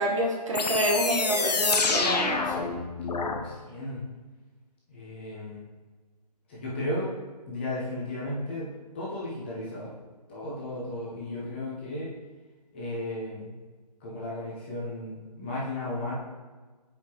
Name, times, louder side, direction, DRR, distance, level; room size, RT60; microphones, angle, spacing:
voice 1, 0.0-2.5, right 1 dB, 50° right, -1 dB, 1.4 m, -27 dB
sound 1, 0.5-3.4, left 4 dB, 75° left, 0.8 m, -27 dB
voice 2, 3.2-4.0 4.9-5.6 6.5-7.1 7.5-8.7 8.9-9.9 10.3-12.1 12.7-13.5 14.0-16.1, left 1 dB, 15° left, -7 dB, 0.8 m, -34 dB
7.4 x 4.9 x 3.0 m, 1.3 s
hypercardioid pair, 170°, 21 cm